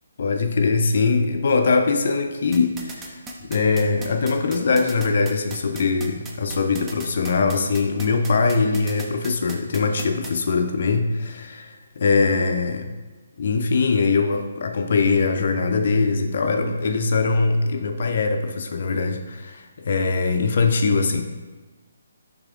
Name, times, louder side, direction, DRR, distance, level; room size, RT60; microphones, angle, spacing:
voice 1, 0.2-12.9 13.4-21.2, left 4 dB, 50° left, 5 dB, 0.4 m, -22 dB
sound 1, 2.5-10.3, right 3 dB, 15° right, 0.4 m, -37 dB
6.1 x 3.3 x 2.4 m, 1.3 s
figure-of-eight pair, 140°, 0 cm